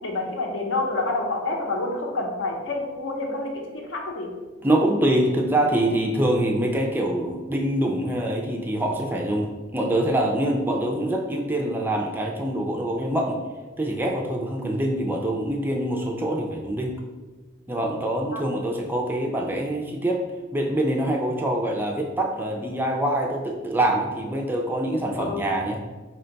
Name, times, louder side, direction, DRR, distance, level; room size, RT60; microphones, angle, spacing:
voice 1, 0.0-4.3 18.3-18.4 25.2-25.4, left 2 dB, 70° left, 0 dB, 0.7 m, -28 dB
voice 2, 4.6-13.4 13.8-17.0 17.7-20.2 20.5-25.8, right 1 dB, 10° right, 1 dB, 0.3 m, -25 dB
4.4 x 2.2 x 3.8 m, 1.3 s
head